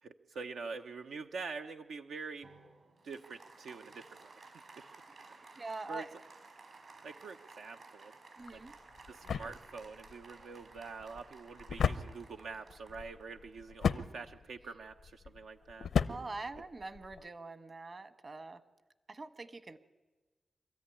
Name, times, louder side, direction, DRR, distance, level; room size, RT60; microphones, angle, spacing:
voice 1, 0.0-2.5 3.0-4.9 5.9-6.1 7.0-8.1 8.5-8.6 9.1-15.9, right 4 dB, 90° right, 5 dB, 0.8 m, -45 dB
Applause, 2.4-14.3, right 3 dB, 65° right, 4.5 m, -56 dB
voice 2, 5.6-6.1 8.4-8.7 16.1-18.6 19.1-19.8, right 3 dB, 45° right, 11 dB, 1.3 m, -44 dB
sound 1, 8.4-17.3, left 6 dB, 90° left, 0.7 m, -37 dB
25.0 x 14.0 x 9.9 m, 1.3 s
cardioid pair, 60°, 0 cm